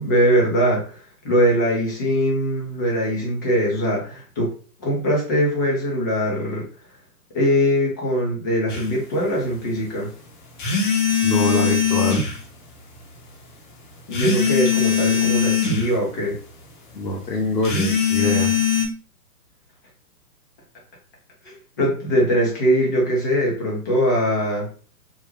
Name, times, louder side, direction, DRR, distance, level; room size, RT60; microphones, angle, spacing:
voice 1, 0.0-4.5 4.8-6.6 7.3-10.1 14.1-16.4 21.4-24.7, equal, 15° left, -3 dB, 0.5 m, -21 dB
sound 1, 8.7-8.8 10.6-12.4 14.1-15.9 17.6-18.9, left 7 dB, 35° left, 0.8 m, -20 dB
voice 2, 11.2-12.2 16.9-18.6, left 1 dB, 90° left, -1 dB, 0.9 m, -24 dB
3.7 x 2.1 x 3.1 m, 0.39 s
figure-of-eight pair, 130°, 48 cm